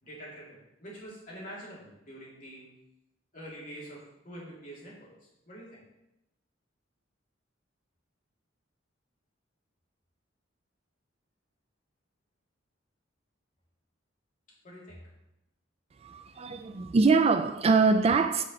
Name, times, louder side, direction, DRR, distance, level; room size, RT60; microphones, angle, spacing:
voice 1, 0.0-2.7 3.3-5.8 14.6-15.1, equal, 45° left, -6 dB, 2.9 m, -46 dB
voice 2, 16.0-18.4, right 4 dB, 30° right, 9 dB, 0.3 m, -23 dB
6.1 x 5.1 x 5.4 m, 0.89 s
head